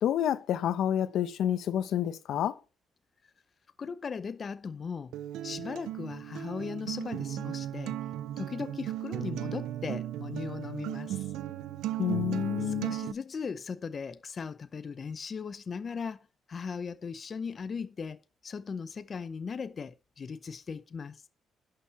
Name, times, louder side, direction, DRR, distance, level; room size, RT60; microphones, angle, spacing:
voice 1, 0.0-2.5 12.0-12.9, left 10 dB, 75° left, 1.0 m, -29 dB
voice 2, 3.8-5.2 5.4-8.0 8.4-11.3 12.6-21.2, left 5 dB, 40° left, 0.6 m, -38 dB
Acoustic guitar, 5.1-13.1, right 12 dB, 90° right, 0.5 m, -36 dB
11.5 x 6.8 x 4.1 m
cardioid pair, 90°, 0 cm